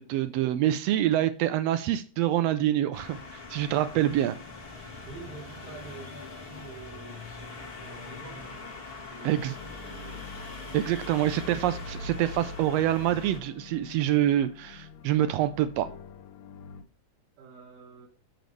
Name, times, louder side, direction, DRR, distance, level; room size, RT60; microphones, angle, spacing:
voice 1, 0.0-4.4 9.2-9.5 10.7-15.9, right 12 dB, 80° right, 1.5 m, -26 dB
sound 1, 2.9-13.4, left 3 dB, 45° left, 0.7 m, -42 dB
voice 2, 5.1-10.3 17.4-18.1, right 4 dB, 55° right, 2.3 m, -48 dB
sound 2, 9.6-16.8, left 3 dB, 75° left, 1.9 m, -45 dB
7.8 x 6.8 x 3.2 m
omnidirectional pair, 3.4 m